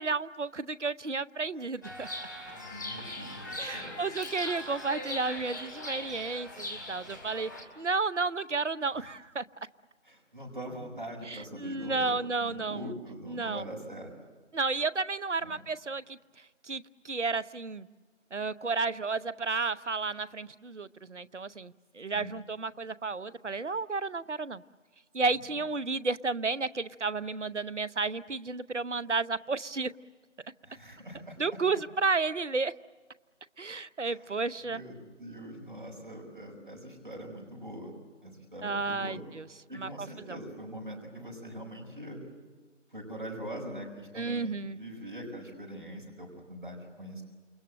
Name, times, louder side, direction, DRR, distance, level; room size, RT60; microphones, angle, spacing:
voice 1, 0.0-2.1 3.6-7.5 7.8-9.4 11.3-12.9 13.3-13.6 14.5-16.2 16.6-17.9 18.3-24.6 25.1-29.9 31.4-32.7 33.6-34.8 38.6-39.5 39.8-40.4 44.1-44.8, right 4 dB, 75° right, 16 dB, 0.8 m, -32 dB
Chirp tweet, 1.8-7.6, left 1 dB, 15° left, 2.2 m, -40 dB
voice 2, 2.5-4.0 9.0-9.1 10.0-14.1 15.4-15.6 22.1-22.3 30.6-31.4 34.0-34.3 34.6-37.9 38.2-39.2 39.7-42.2 42.9-47.2, equal, 45° right, 0 dB, 5.8 m, -43 dB
28.5 x 23.0 x 7.7 m, 1.3 s
figure-of-eight pair, 170°, 36 cm